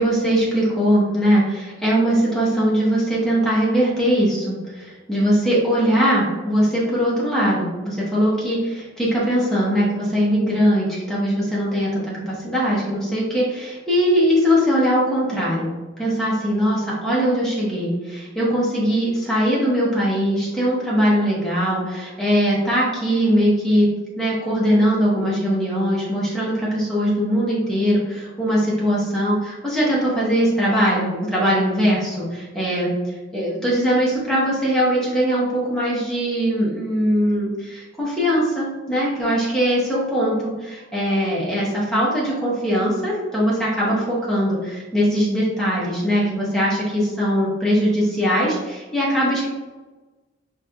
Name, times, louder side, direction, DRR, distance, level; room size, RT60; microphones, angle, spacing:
voice 1, 0.0-15.7 16.0-23.9 24.2-49.5, equal, ahead, -7 dB, 0.9 m, -21 dB
4.2 x 3.2 x 2.4 m, 1.2 s
head